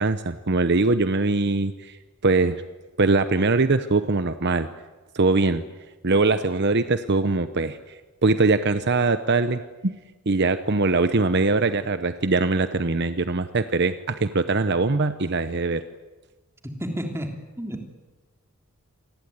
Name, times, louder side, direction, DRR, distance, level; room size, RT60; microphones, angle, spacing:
voice 1, 0.0-2.0 2.2-2.5 3.0-4.7 5.1-5.6 6.0-9.9 10.3-15.8, right 3 dB, 50° right, 11 dB, 0.9 m, -22 dB
voice 2, 16.6-17.3 17.6-17.9, equal, 10° right, 3 dB, 3.2 m, -31 dB
27.0 x 19.5 x 9.7 m, 1.2 s
head